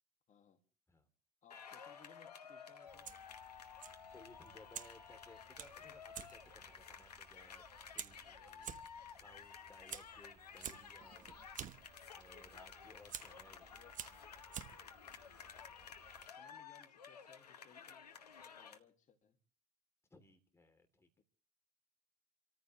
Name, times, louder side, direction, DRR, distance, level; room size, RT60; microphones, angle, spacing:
voice 1, 0.3-0.6 1.4-3.1 13.5-14.1 16.1-19.4 21.2-21.3, left 7 dB, 40° left, 2.2 m, -66 dB
sound 1, 1.5-18.8, left 7 dB, 85° left, 1.0 m, -54 dB
Fire, 2.9-16.3, right 9 dB, 40° right, 1.1 m, -53 dB
voice 2, 4.1-7.7 7.9-8.7 9.1-11.4 12.1-13.7 20.1-21.2, left 1 dB, 15° left, 3.0 m, -62 dB
28.5 x 14.0 x 3.1 m
figure-of-eight pair, 60°, 20 cm